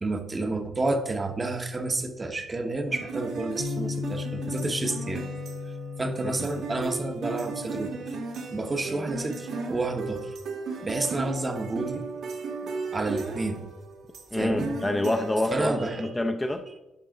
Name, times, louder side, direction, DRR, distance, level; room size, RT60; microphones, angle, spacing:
voice 1, 0.0-5.3 6.0-8.0 8.5-10.4 10.8-12.1 12.6-13.6 14.3-14.7 15.5-16.1, right 2 dB, 25° right, 7 dB, 0.9 m, -30 dB
sound 1, 2.9-16.1, right 4 dB, 70° right, 1.6 m, -36 dB
Bass guitar, 3.6-9.8, left 7 dB, 80° left, 0.7 m, -38 dB
voice 2, 14.3-16.7, left 1 dB, 15° left, 6 dB, 0.6 m, -27 dB
11.0 x 5.6 x 3.8 m, 1.0 s
cardioid pair, 90°, 0 cm